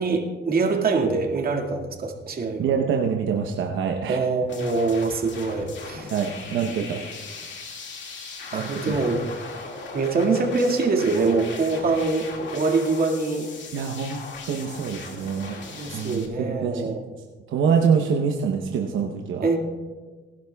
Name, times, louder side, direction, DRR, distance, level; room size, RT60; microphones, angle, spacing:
voice 1, 0.0-2.7 4.1-6.1 8.5-9.2 9.9-13.5 15.8-17.0 19.4-19.6, right 3 dB, 50° right, 0 dB, 2.0 m, -24 dB
voice 2, 2.6-4.2 6.1-7.0 8.5-9.0 13.7-14.2 14.5-15.6 15.9-16.9 17.5-19.5, right 6 dB, 80° right, 1 dB, 0.9 m, -25 dB
sound 1, 4.5-16.3, left 4 dB, 65° left, 2.1 m, -39 dB
19.5 x 11.5 x 2.3 m, 1.4 s
cardioid pair, 90°, 20 cm